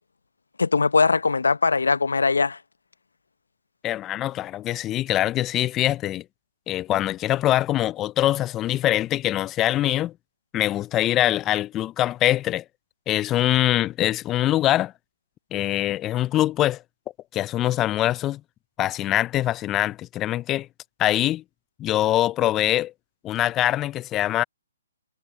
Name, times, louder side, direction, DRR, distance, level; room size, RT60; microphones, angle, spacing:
voice 1, 0.6-2.6, left 4 dB, 85° left, 0.7 m, -20 dB
voice 2, 3.8-6.2 6.7-10.1 10.5-12.6 13.1-14.9 15.5-16.8 17.3-18.4 18.8-20.7 21.0-21.4 21.8-22.9 23.2-24.4, left 14 dB, 20° left, 0.3 m, -23 dB
hypercardioid pair, 145°, 0 cm